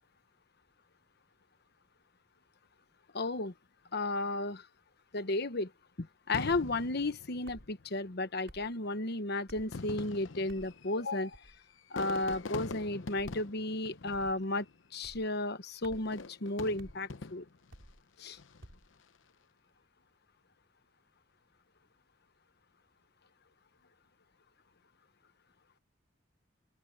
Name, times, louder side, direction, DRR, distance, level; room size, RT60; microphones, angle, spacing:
voice 1, 3.1-3.5 3.9-4.7 5.1-5.7 6.0-11.4 11.9-14.6 14.9-17.5 18.2-18.4, left 2 dB, 55° left, 1.2 m, -34 dB
Fireworks, 6.3-8.0 8.8-8.9 9.6-14.9 15.9-17.7 18.3-18.7, left 3 dB, 75° left, 0.8 m, -44 dB
sound 1, 6.5-6.7 7.4-7.7 8.5-8.7 9.5-9.8 10.5-10.7 11.3-11.6 12.2-12.5 13.2-13.4 14.1-14.4 15.0-15.3 15.8-16.1 16.8-17.0 17.7-18.0 18.6-18.9, equal, 70° right, 6.6 m, -52 dB
open air
head